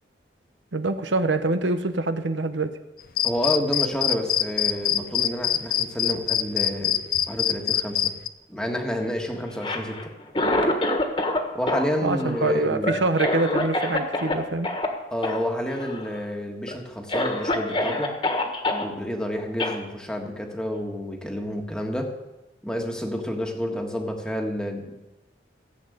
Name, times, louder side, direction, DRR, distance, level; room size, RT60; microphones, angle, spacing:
voice 1, 0.7-2.7 12.0-14.7, right 3 dB, 85° right, 9 dB, 1.0 m, -25 dB
sound 1, 3.2-8.3, left 11 dB, 50° left, 0.6 m, -23 dB
voice 2, 3.2-8.1 8.5-10.1 11.5-13.0 15.1-18.1 18.7-22.1 22.6-25.0, equal, 5° left, 2 dB, 1.5 m, -29 dB
Cough, 9.5-11.4 11.7-14.4 14.6-14.9 15.2-15.4 15.7-16.2 16.7-16.8 17.1-18.8 19.6-19.8, left 1 dB, 25° left, 1.6 m, -26 dB
15.0 x 7.9 x 8.0 m, 1.0 s
head